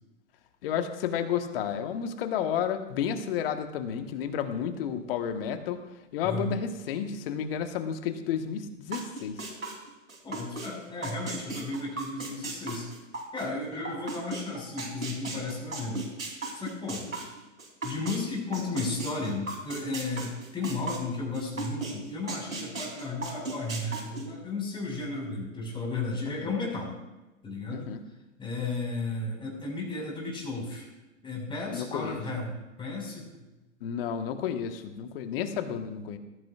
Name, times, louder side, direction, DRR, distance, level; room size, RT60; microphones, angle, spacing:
voice 1, 0.6-5.8 6.1-9.4 26.2-26.6 27.7-28.0 31.7-32.2 33.8-36.2, left 8 dB, 45° left, 7 dB, 1.5 m, -31 dB
voice 2, 6.2-6.6 10.2-12.9 13.3-16.1 16.5-17.1 17.8-26.9 27.4-27.9 28.4-30.9 31.2-33.3, left 2 dB, 15° left, -2 dB, 5.5 m, -34 dB
sound 1, 8.9-10.7 11.0-18.2 18.5-21.9 22.3-24.2, right 3 dB, 85° right, 3.6 m, -36 dB
19.5 x 14.5 x 2.5 m, 1.1 s
figure-of-eight pair, 115°, 39 cm